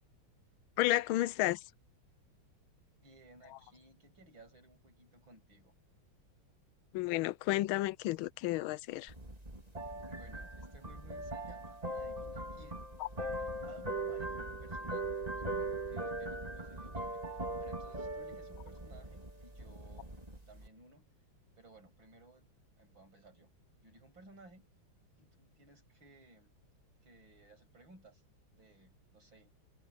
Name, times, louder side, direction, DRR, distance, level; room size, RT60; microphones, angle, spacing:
voice 1, 0.8-1.6 6.9-9.1, left 16 dB, 90° left, 1.4 m, -31 dB
voice 2, 3.0-5.7 10.1-12.9 13.4-17.2 17.6-20.1 20.5-21.1 21.6-22.5 22.8-23.5 23.8-24.7 25.2-26.5 27.0-28.2 28.5-29.5, right 2 dB, 70° right, 8.9 m, -59 dB
sound 1, 9.1-20.7, right 2 dB, 20° right, 3.1 m, -40 dB
omnidirectional pair, 2.2 m